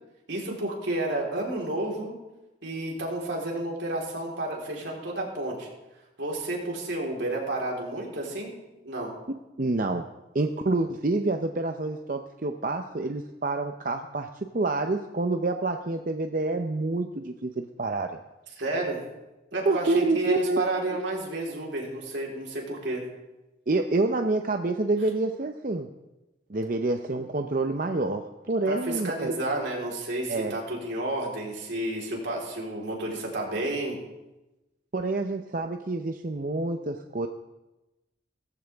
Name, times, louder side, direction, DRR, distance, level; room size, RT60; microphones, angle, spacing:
voice 1, 0.3-2.1 2.6-5.7 6.2-8.5 8.8-9.1 18.6-19.0 19.5-23.0 28.7-34.0, right 1 dB, 80° right, -2 dB, 3.9 m, -31 dB
voice 2, 9.6-10.1 10.3-14.3 14.5-18.1 19.6-20.6 23.7-25.9 26.5-29.3 30.3-30.5 34.9-37.3, right 2 dB, 45° right, 5 dB, 0.6 m, -27 dB
17.5 x 14.5 x 3.5 m, 1.0 s
head